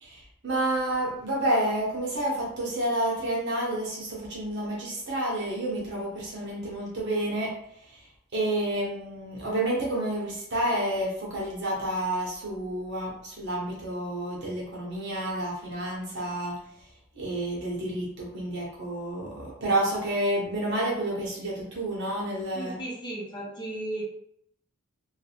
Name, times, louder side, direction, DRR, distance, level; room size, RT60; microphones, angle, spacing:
voice 1, 0.0-7.5 7.8-8.0 8.3-16.6 17.1-22.8, right 1 dB, 55° right, -4 dB, 1.2 m, -29 dB
voice 2, 22.5-24.1, right 2 dB, 20° left, -4 dB, 0.8 m, -35 dB
3.5 x 2.3 x 3.4 m, 0.71 s
head